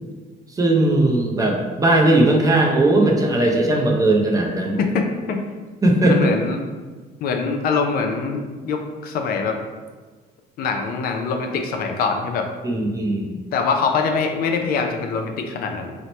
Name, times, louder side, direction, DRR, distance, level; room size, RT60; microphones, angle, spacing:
voice 1, 0.5-4.8 5.8-6.3 12.6-13.3, right 2 dB, 20° right, 0 dB, 0.5 m, -18 dB
voice 2, 4.8-5.4 6.1-6.6 7.2-9.5 10.6-12.4 13.5-15.9, left 5 dB, 65° left, 4 dB, 0.4 m, -23 dB
2.9 x 2.1 x 4.1 m, 1.4 s
cardioid pair, 110°, 17 cm